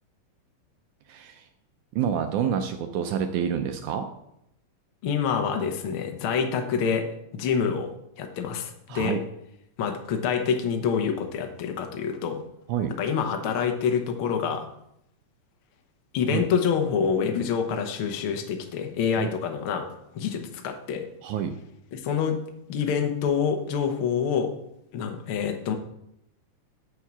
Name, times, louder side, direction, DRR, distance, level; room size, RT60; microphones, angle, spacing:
voice 1, 1.1-1.5 1.9-4.1 8.9-9.2 12.7-12.9 16.3-16.5 19.2-19.3 21.2-21.5, right 8 dB, 75° right, 7 dB, 2.0 m, -28 dB
voice 2, 5.0-7.1 7.3-7.9 8.2-9.2 9.8-12.4 13.0-14.7 16.1-19.9 20.1-21.1 21.9-22.4 22.7-24.5 24.9-25.7, left 7 dB, 60° left, 4 dB, 1.4 m, -26 dB
9.5 x 5.5 x 7.3 m, 0.79 s
omnidirectional pair, 3.7 m